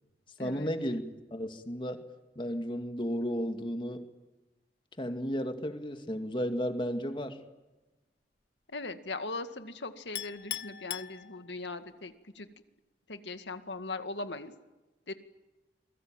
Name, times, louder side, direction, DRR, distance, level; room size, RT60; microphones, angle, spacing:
voice 1, 0.4-1.0 1.3-2.1 2.4-4.1 5.0-7.4, equal, 30° left, 7 dB, 2.2 m, -33 dB
voice 2, 8.7-12.5 13.1-14.5 15.1-15.2, left 3 dB, 90° left, 9 dB, 2.1 m, -39 dB
Chink clink, 10.2-11.8, left 13 dB, 65° left, 1.0 m, -40 dB
28.5 x 22.5 x 9.1 m, 1.1 s
head